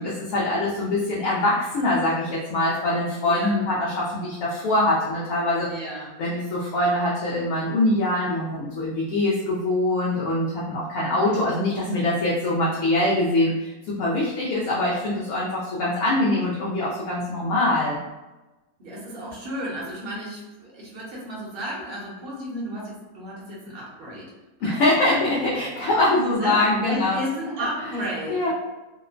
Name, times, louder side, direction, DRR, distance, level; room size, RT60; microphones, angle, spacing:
voice 1, 0.0-5.7 6.2-18.0 24.6-27.2 27.6-27.7 28.3-28.5, left 1 dB, 70° left, -6 dB, 1.0 m, -23 dB
voice 2, 3.2-3.6 5.7-6.2 11.0-11.6 18.8-24.3 24.6-24.8 25.1-25.9 26.4-28.5, right 1 dB, 50° right, -4 dB, 0.8 m, -33 dB
2.8 x 2.1 x 2.4 m, 1.1 s
omnidirectional pair, 1.6 m